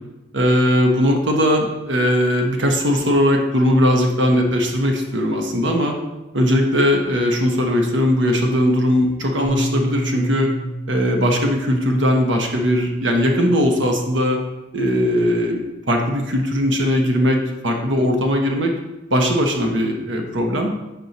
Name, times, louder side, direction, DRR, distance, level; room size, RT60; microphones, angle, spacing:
voice 1, 0.3-5.9 6.3-10.5 10.9-14.4 14.7-15.6 15.9-18.7 19.1-20.7, equal, 90° right, 2 dB, 1.0 m, -19 dB
Bass guitar, 9.4-14.0 14.7-15.7, right 1 dB, 15° right, 0.8 m, -31 dB
6.2 x 5.4 x 4.1 m, 1.0 s
head